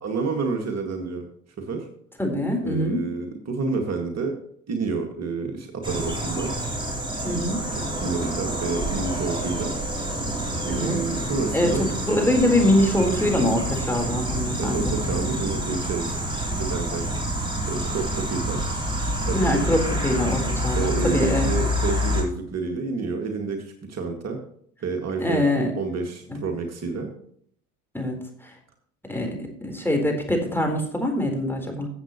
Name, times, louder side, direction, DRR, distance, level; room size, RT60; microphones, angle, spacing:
voice 1, 0.0-1.3 1.6-1.9 2.6-4.4 4.7-6.5 7.3-7.4 7.7-9.7 10.6-11.9 14.6-16.2 16.6-17.2 17.7-18.6 19.2-19.5 20.7-24.4 24.8-25.5 25.7-27.1, right 4 dB, 40° right, 3 dB, 2.1 m, -29 dB
voice 2, 2.2-3.0 7.2-7.6 10.7-11.0 11.5-11.7 12.1-14.9 19.3-21.5 25.2-25.7 26.3-26.4 27.9-28.2 29.1-31.9, left 1 dB, 5° left, 2 dB, 4.0 m, -23 dB
sound 1, 5.8-22.2, equal, 10° right, 4.1 m, -27 dB
15.5 x 7.9 x 3.0 m, 0.65 s
hypercardioid pair, 70°, 39 cm